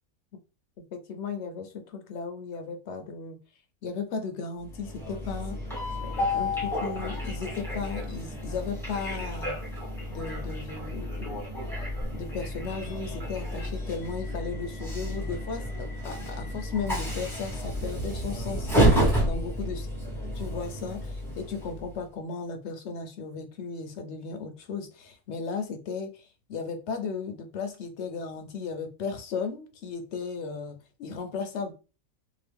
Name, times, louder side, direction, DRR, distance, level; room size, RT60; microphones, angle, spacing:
voice 1, 0.9-3.4 3.8-5.6 6.0-9.6 10.1-11.4 12.1-18.7 19.2-19.9 20.4-31.7, left 5 dB, 65° left, 0.8 m, -35 dB
Train, 4.7-22.0, equal, ahead, 0.9 m, -30 dB
2.8 x 2.5 x 3.3 m
omnidirectional pair, 1.5 m